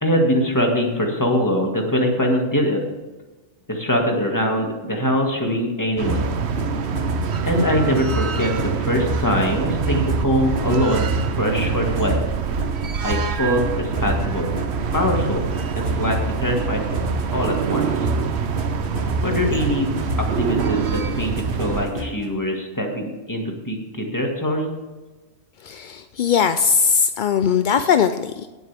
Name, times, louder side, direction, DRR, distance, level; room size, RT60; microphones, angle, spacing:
voice 1, 0.0-2.8 3.7-6.3 7.4-11.1 11.4-12.2 13.0-14.5 14.9-15.5 15.8-17.0 17.3-18.1 19.2-19.9 20.2-24.7, equal, 15° left, 1 dB, 1.9 m, -22 dB
sound 1, 6.0-21.9, right 7 dB, 60° right, 1.0 m, -25 dB
sound 2, 6.1-22.3, left 1 dB, 45° right, 1.8 m, -29 dB
voice 2, 25.6-28.5, left 6 dB, 65° left, 10 dB, 0.5 m, -19 dB
17.5 x 8.1 x 3.5 m, 1.2 s
omnidirectional pair, 1.3 m